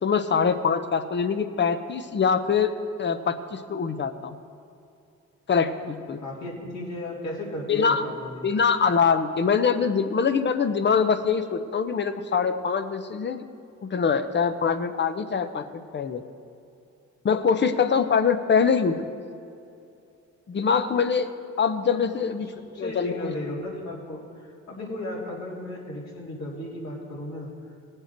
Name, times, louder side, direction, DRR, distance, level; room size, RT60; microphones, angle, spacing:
voice 1, 0.0-2.7 3.0-4.4 5.5-6.2 7.7-8.0 8.4-13.4 13.8-15.6 15.9-16.2 17.2-19.0 20.5-21.3 21.6-22.5 22.8-23.3, left 6 dB, 35° left, 10 dB, 0.9 m, -23 dB
voice 2, 6.2-8.5 21.9-27.5, left 1 dB, 65° left, -4 dB, 3.6 m, -35 dB
18.5 x 7.8 x 4.6 m, 2.6 s
cardioid pair, 90°, 30 cm